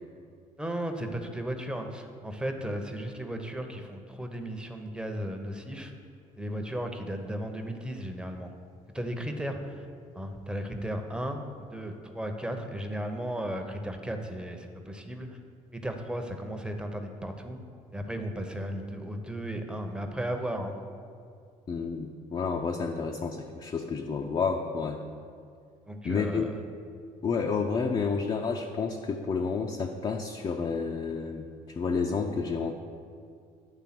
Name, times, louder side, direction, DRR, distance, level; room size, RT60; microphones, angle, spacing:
voice 1, 0.6-5.9 6.4-8.5 8.9-9.9 10.1-11.4 11.7-15.3 15.7-17.6 17.9-20.7 25.9-26.5, right 1 dB, 5° right, 5 dB, 0.8 m, -35 dB
voice 2, 21.7-25.0 26.0-26.5 27.2-32.7, left 5 dB, 35° left, 2 dB, 0.5 m, -30 dB
9.0 x 3.4 x 5.9 m, 2.3 s
supercardioid pair, 80°, 15 cm